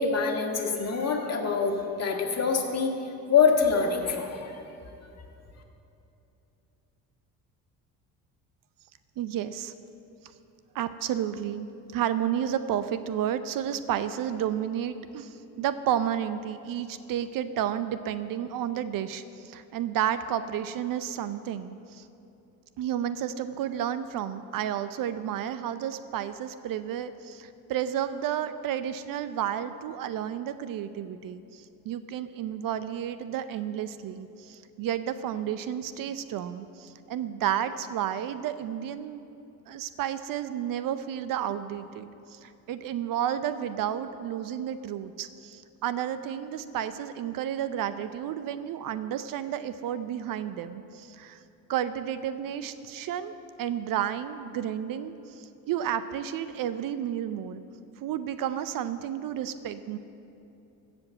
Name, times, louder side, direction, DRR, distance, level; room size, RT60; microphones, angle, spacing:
voice 1, 0.0-3.0 3.3-4.5, left 5 dB, 40° left, 2 dB, 1.8 m, -25 dB
voice 2, 9.2-9.7 10.7-11.7 11.9-22.1 22.8-39.2 39.7-51.4 51.7-57.6 58.0-60.0, right 10 dB, 55° right, 12 dB, 0.6 m, -31 dB
15.0 x 5.3 x 7.5 m, 2.8 s
supercardioid pair, 75°, 39 cm